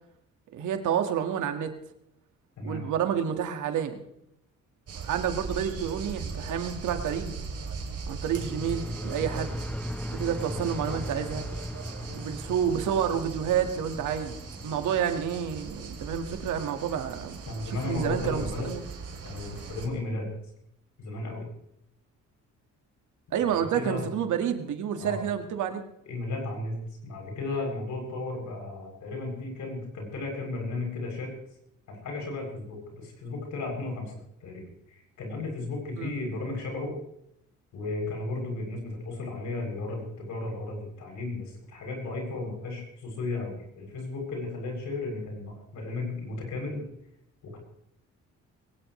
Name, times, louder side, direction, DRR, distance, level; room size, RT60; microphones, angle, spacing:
voice 1, 0.5-1.7 2.6-4.0 5.0-7.4 8.1-9.6 10.1-11.4 12.1-14.3 14.6-17.4 17.7-18.8 23.3-25.8 36.0-36.1, right 8 dB, 80° right, 6 dB, 2.0 m, -29 dB
sound 1, 4.9-19.9, right 4 dB, 50° right, 3.4 m, -39 dB
sound 2, 8.3-17.2, equal, 5° left, 0.9 m, -39 dB
voice 2, 10.4-11.0 12.0-12.3 15.3-15.4 17.5-18.7 19.2-20.3 21.0-21.4 23.4-24.1 25.0-25.2 26.1-26.8 27.0-31.3 31.9-34.1 34.4-36.9 37.7-46.9 47.4-47.6, left 2 dB, 75° left, 1 dB, 7.9 m, -34 dB
21.0 x 19.0 x 3.3 m, 0.75 s
cardioid pair, 90°, 30 cm